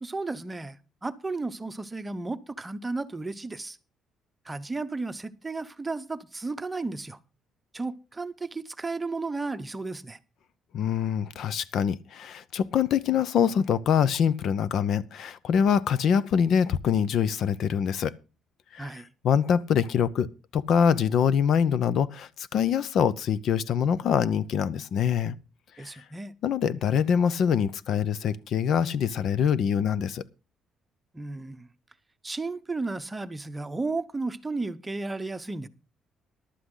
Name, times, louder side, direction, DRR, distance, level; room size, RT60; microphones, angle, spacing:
voice 1, 0.0-3.8 4.4-7.2 7.7-10.2 18.8-19.1 25.8-26.3 31.1-31.7 32.2-35.7, right 3 dB, 15° right, 0.9 m, -33 dB
voice 2, 10.7-18.1 18.7-18.9 19.2-20.3 20.5-25.4 25.8-25.9 26.4-30.2, left 7 dB, 65° left, 0.7 m, -24 dB
14.5 x 11.5 x 3.8 m
cardioid pair, 110°, 0 cm